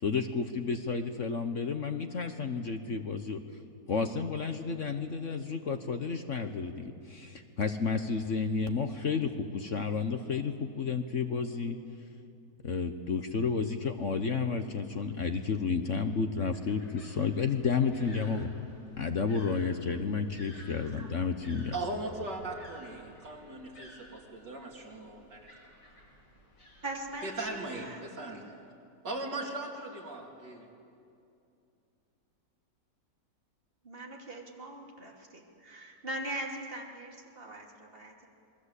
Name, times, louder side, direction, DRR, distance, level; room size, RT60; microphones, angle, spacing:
voice 1, 0.0-3.4 3.9-11.8 12.6-18.5 19.0-21.7, left 5 dB, 50° left, 7 dB, 1.2 m, -31 dB
sound 1, 16.5-27.7, equal, 85° left, 6.3 m, -55 dB
voice 2, 20.9-21.3 21.7-25.5 27.2-27.8 28.2-28.4 29.0-30.7, right 2 dB, 75° right, 0 dB, 3.7 m, -39 dB
voice 3, 26.8-28.0 33.8-38.3, right 1 dB, 30° right, 0 dB, 3.0 m, -41 dB
28.0 x 22.0 x 8.3 m, 2.6 s
omnidirectional pair, 1.9 m